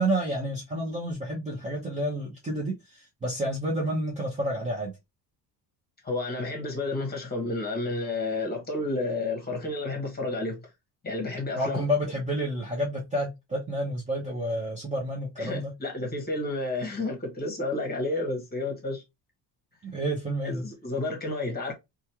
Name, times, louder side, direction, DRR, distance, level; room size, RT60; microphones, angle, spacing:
voice 1, 0.0-4.9 11.5-15.7 19.8-20.7, right 1 dB, 15° right, 0.8 m, -29 dB
voice 2, 6.0-10.6 11.0-11.8 15.4-19.0 20.4-21.7, left 2 dB, 20° left, 1.2 m, -31 dB
3.1 x 2.4 x 2.8 m
cardioid pair, 135°, 45 cm